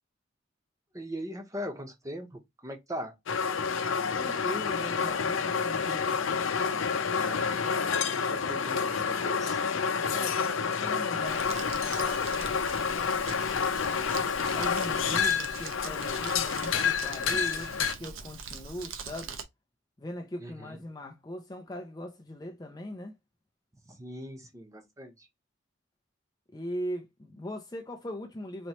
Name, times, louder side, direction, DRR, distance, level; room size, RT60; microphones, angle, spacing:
voice 1, 0.9-3.1 7.1-7.8 8.0-9.6 20.4-20.8 23.9-25.3, equal, 15° right, 0.9 m, -40 dB
sound 1, 3.3-17.9, left 6 dB, 80° left, 0.6 m, -29 dB
voice 2, 4.0-6.3 10.0-13.0 14.5-19.4 20.0-23.1 26.5-28.7, left 1 dB, 20° left, 0.5 m, -40 dB
Crumpling crinkling, 11.3-19.4, right 5 dB, 85° right, 0.8 m, -43 dB
4.2 x 2.9 x 2.9 m
head